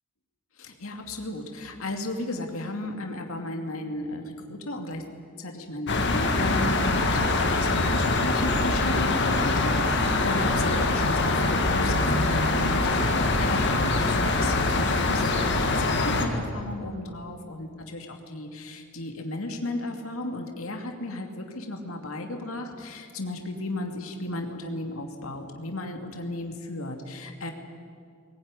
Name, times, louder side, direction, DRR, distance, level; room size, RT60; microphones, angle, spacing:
voice 1, 0.6-5.0 5.4-27.5, left 2 dB, 75° left, 3 dB, 2.5 m, -35 dB
sound 1, 5.9-16.3, left 2 dB, 55° left, 2.1 m, -24 dB
20.0 x 19.0 x 9.7 m, 2.3 s
head